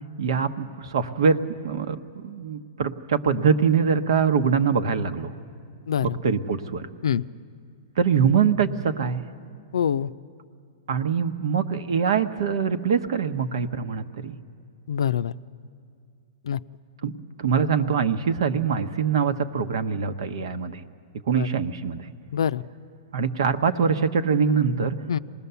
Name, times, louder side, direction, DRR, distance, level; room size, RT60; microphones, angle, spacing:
voice 1, 0.2-1.4 1.6-5.3 6.0-6.9 8.0-9.2 10.9-14.4 17.0-17.1 17.4-20.8 21.3-22.1 23.1-25.0, right 6 dB, 75° right, 9 dB, 1.1 m, -23 dB
voice 2, 9.7-10.1 14.9-15.3 16.5-16.6 21.4-21.5 22.3-22.6 25.1-25.2, left 8 dB, 85° left, 14 dB, 0.5 m, -24 dB
26.5 x 19.5 x 7.0 m, 2.2 s
hypercardioid pair, 145°, 3 cm